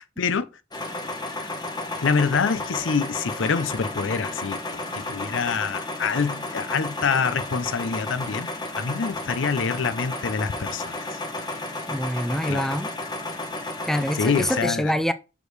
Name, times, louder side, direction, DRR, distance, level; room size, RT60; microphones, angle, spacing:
sound 1, 0.7-14.6, left 2 dB, 20° left, 1.1 m, -32 dB
voice 1, 2.0-8.5 8.8-11.2 12.5-12.8 14.1-14.9, left 5 dB, 80° left, 0.6 m, -26 dB
voice 2, 11.9-12.9 13.8-15.1, equal, ahead, 0.4 m, -25 dB
6.3 x 5.1 x 3.2 m
head